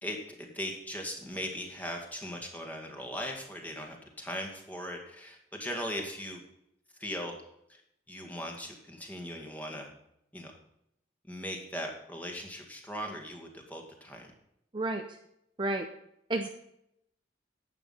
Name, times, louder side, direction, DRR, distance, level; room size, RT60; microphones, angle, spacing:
voice 1, 0.0-6.4 7.0-7.3 7.7-7.8 8.1-9.9 10.3-10.5 11.3-14.3, equal, 10° left, 1 dB, 2.2 m, -39 dB
voice 2, 14.7-15.0 15.6-15.9 16.3-16.5, right 2 dB, 25° right, 5 dB, 0.7 m, -30 dB
12.0 x 8.5 x 5.6 m, 0.77 s
head